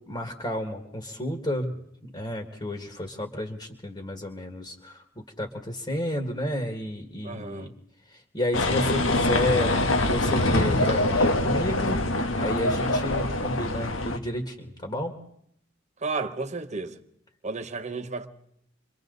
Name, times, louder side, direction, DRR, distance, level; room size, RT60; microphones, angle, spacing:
voice 1, 0.1-7.7 8.1-9.7 10.1-12.1 12.4-15.1, left 1 dB, 25° left, 1.9 m, -31 dB
voice 2, 7.2-7.7 16.0-17.0 17.4-18.3, right 3 dB, 35° right, 1.2 m, -32 dB
sound 1, 8.5-14.2, left 2 dB, 80° left, 1.5 m, -24 dB
29.5 x 24.0 x 4.0 m
head